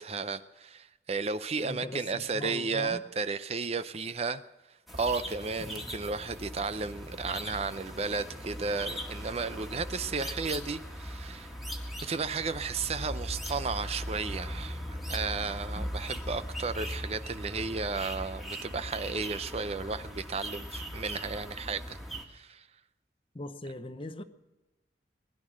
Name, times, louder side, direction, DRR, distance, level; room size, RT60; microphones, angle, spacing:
voice 1, 0.0-4.4 4.9-11.5 11.8-22.0 22.3-22.7, right 4 dB, 35° right, 0.5 m, -34 dB
voice 2, 1.6-3.0 5.6-5.9 15.8-15.9 23.3-24.2, left 1 dB, 30° left, 0.8 m, -40 dB
sound 1, 4.9-22.2, equal, ahead, 1.7 m, -39 dB
Singing, 6.2-10.0 10.3-13.5 14.5-14.6 15.1-19.3 19.9-20.0 20.3-21.1, right 2 dB, 70° right, 3.1 m, -62 dB
20.0 x 11.0 x 6.3 m
head